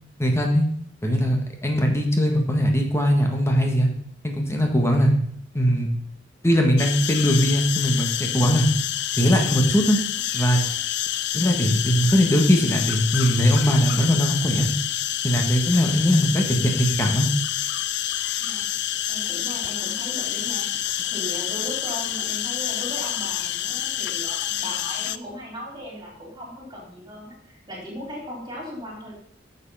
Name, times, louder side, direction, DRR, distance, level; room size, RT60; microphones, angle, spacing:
voice 1, 0.2-0.7 1.0-3.9 4.2-5.1 5.5-5.9 6.4-8.7 9.2-10.0 10.3-10.6 11.3-14.7 15.2-17.3, equal, 15° left, 3 dB, 1.6 m, -20 dB
sound 1, 6.8-25.2, left 13 dB, 65° left, 0.4 m, -28 dB
voice 2, 19.1-20.7 21.1-29.1, equal, 25° right, -5 dB, 4.0 m, -37 dB
8.3 x 7.2 x 5.7 m, 0.64 s
head